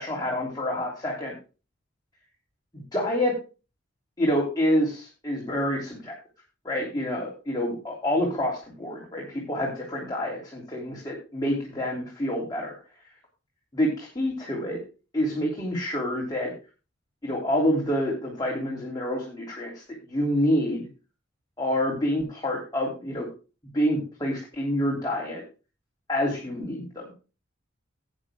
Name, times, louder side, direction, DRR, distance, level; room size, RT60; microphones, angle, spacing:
voice 1, 0.0-1.3 2.7-3.3 4.2-6.1 6.6-12.8 13.7-14.8 15.1-16.5 17.2-19.7 20.1-20.9 21.6-23.3 23.7-25.4 26.1-27.1, equal, 20° left, -3 dB, 3.1 m, -27 dB
17.5 x 9.4 x 2.2 m, 0.32 s
head